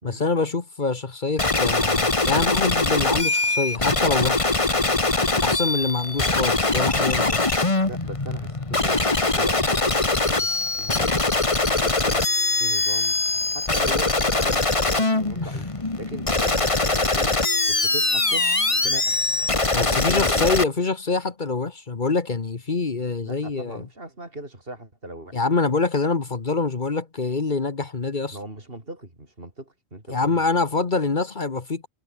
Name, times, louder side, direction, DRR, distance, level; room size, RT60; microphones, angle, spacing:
voice 1, 0.0-4.5 5.4-7.6 15.4-15.5 19.7-23.9 25.3-28.4 30.1-31.9, left 4 dB, 45° left, 1.5 m, -25 dB
sound 1, 1.4-20.6, left 2 dB, 30° left, 1.8 m, -22 dB
voice 2, 7.9-9.1 9.3-11.1 11.7-12.3 12.5-13.1 13.5-17.4 17.7-19.2 19.8-20.5 23.3-25.4 28.3-30.4, right 1 dB, 55° right, 5.8 m, -38 dB
omnidirectional pair, 1.1 m